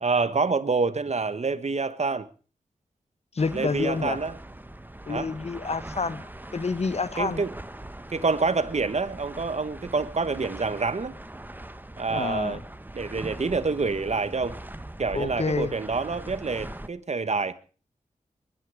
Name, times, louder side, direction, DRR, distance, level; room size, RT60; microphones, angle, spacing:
voice 1, 0.0-2.3 3.5-4.4 5.1-5.3 7.2-7.5 8.1-11.1 12.0-12.6 12.9-14.6 15.0-17.5, right 4 dB, 50° right, 1.4 m, -27 dB
voice 2, 3.3-4.2 5.1-7.4 12.1-12.6 15.1-15.7, left 4 dB, 50° left, 1.0 m, -28 dB
sound 1, 3.4-16.9, right 1 dB, 15° right, 1.2 m, -41 dB
22.5 x 11.5 x 5.0 m
cardioid pair, 60°, 14 cm